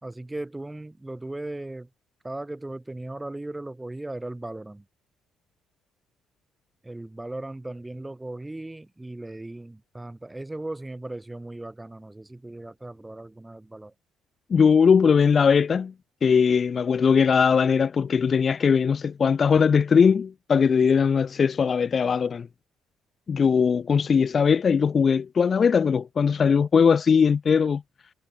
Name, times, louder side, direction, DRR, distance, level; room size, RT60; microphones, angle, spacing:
voice 1, 0.0-1.9 2.2-4.9 6.8-13.9, right 2 dB, 10° right, 5.3 m, -37 dB
voice 2, 14.5-15.9 16.2-22.5 23.3-27.8, left 6 dB, 40° left, 0.5 m, -20 dB
cardioid pair, 85°, 0 cm